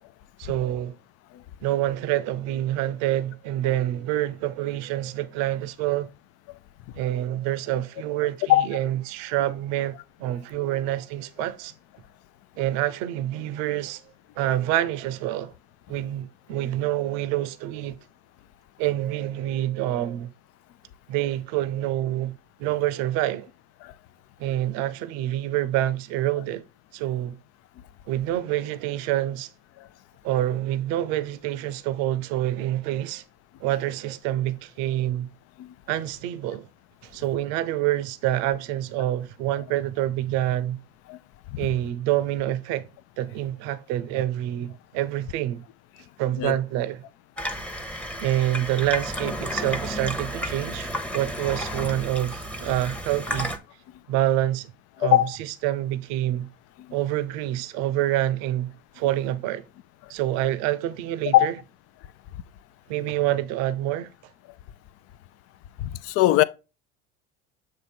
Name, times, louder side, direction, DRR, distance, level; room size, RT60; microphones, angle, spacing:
voice 1, 0.4-0.9 1.6-6.1 6.9-11.7 12.6-14.0 14.4-15.5 15.9-18.0 18.8-20.3 21.1-23.5 24.4-26.6 26.9-27.4 28.1-29.5 30.2-33.2 33.6-35.3 35.9-36.7 37.0-40.8 41.6-42.9 43.2-45.6 46.2-47.0 48.2-53.5 54.1-54.7 55.0-56.5 56.9-59.6 60.1-61.6 62.9-64.1, right 13 dB, 60° right, 0.7 m, -27 dB
Water tap faucet / Sink (filling or washing), 47.4-53.6, equal, 5° left, 0.9 m, -32 dB
voice 2, 65.8-66.4, left 15 dB, 50° left, 0.5 m, -19 dB
7.6 x 3.1 x 4.4 m
hypercardioid pair, 75°, 31 cm